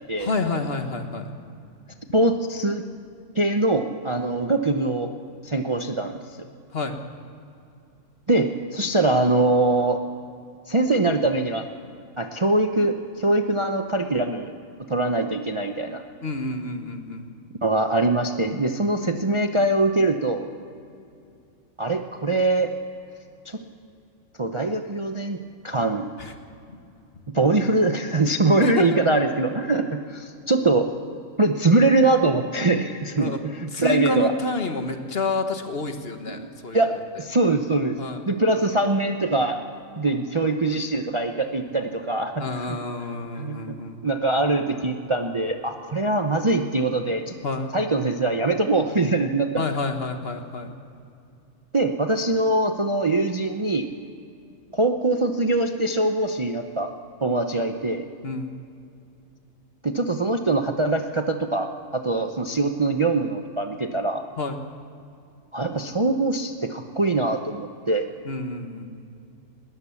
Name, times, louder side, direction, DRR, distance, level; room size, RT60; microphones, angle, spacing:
voice 1, 0.2-1.3 6.7-6.9 16.2-17.2 26.2-26.3 26.7-26.8 28.6-28.9 33.2-33.4 33.7-36.9 37.1-37.2 38.0-38.2 42.4-44.0 47.4-47.7 49.6-50.7 58.2-58.5 64.4-64.5 68.2-68.8, left 3 dB, 45° left, 6 dB, 1.6 m, -28 dB
voice 2, 2.1-2.8 3.4-5.1 5.4-6.2 8.3-10.0 10.7-11.6 12.2-14.5 14.9-16.0 17.6-20.5 21.8-22.7 23.5-23.6 24.4-25.4 25.6-26.1 27.3-30.9 31.4-34.3 36.3-38.0 38.3-39.6 40.0-42.8 43.4-43.7 44.0-47.3 47.7-49.6 51.7-53.9 54.7-56.9 57.2-58.0 59.8-64.2 65.5-68.0, right 2 dB, 25° right, 5 dB, 0.7 m, -23 dB
20.0 x 18.0 x 7.2 m, 2.5 s
omnidirectional pair, 1.5 m